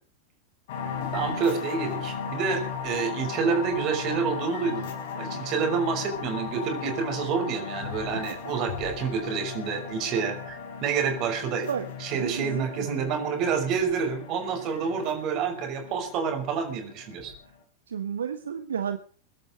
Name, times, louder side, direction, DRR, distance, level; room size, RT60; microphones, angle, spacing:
sound 1, 0.7-17.6, left 6 dB, 55° left, 4.1 m, -37 dB
voice 1, 1.1-4.9 5.1-11.7 12.0-17.3, right 6 dB, 40° right, 6 dB, 5.9 m, -28 dB
voice 2, 11.7-13.1 17.9-19.0, right 8 dB, 65° right, 10 dB, 1.2 m, -32 dB
23.0 x 12.0 x 5.2 m, 0.43 s
figure-of-eight pair, 90°, 0 cm